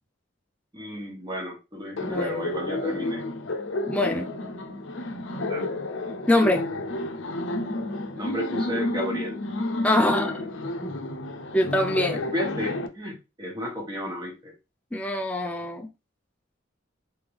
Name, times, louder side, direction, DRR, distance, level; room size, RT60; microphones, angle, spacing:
voice 1, 0.7-3.3 5.5-5.7 8.1-9.4 12.1-14.5, equal, 20° right, 1.3 m, -33 dB
Laughter, 2.0-12.9, left 2 dB, 65° left, 0.7 m, -31 dB
voice 2, 2.0-2.5 3.9-4.3 6.3-6.6 9.8-10.5 10.8-10.9 11.5-12.2 14.9-15.9, left 1 dB, 5° left, 0.5 m, -24 dB
4.5 x 3.4 x 3.4 m
head